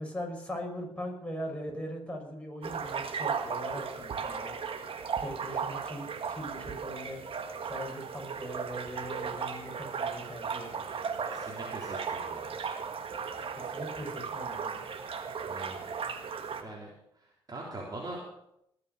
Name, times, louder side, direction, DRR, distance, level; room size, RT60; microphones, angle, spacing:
voice 1, 0.0-4.5 5.2-7.2 7.6-11.2 13.6-14.8, equal, 10° left, 1 dB, 6.0 m, -40 dB
sound 1, 2.6-16.6, right 6 dB, 50° right, 1.8 m, -36 dB
voice 2, 11.3-12.6 15.4-15.8 16.6-16.9 17.2-18.2, right 2 dB, 35° right, -3 dB, 3.8 m, -42 dB
20.0 x 6.9 x 6.7 m, 0.76 s
hypercardioid pair, 55°, 12 cm